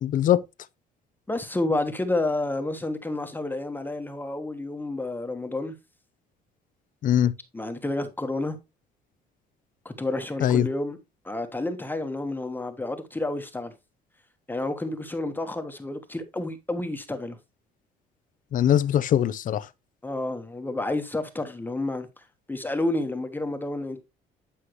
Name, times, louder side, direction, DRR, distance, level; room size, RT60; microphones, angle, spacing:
voice 1, 0.0-0.4 7.0-7.3 10.4-10.7 18.5-19.7, left 10 dB, 50° left, 0.7 m, -21 dB
voice 2, 1.3-5.7 7.5-8.6 9.8-11.0 11.2-13.7 14.5-17.4 20.0-22.1 22.5-24.0, left 2 dB, 10° left, 1.3 m, -30 dB
9.9 x 5.6 x 3.1 m
cardioid pair, 110°, 17 cm